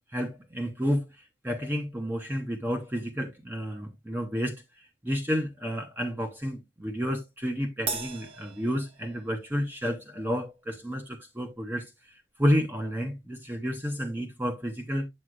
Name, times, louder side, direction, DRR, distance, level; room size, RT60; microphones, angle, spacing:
voice 1, 0.1-15.1, equal, 10° right, 0.7 m, -31 dB
Crash cymbal, 7.9-9.5, right 4 dB, 30° right, 1.1 m, -37 dB
8.6 x 6.2 x 2.4 m
head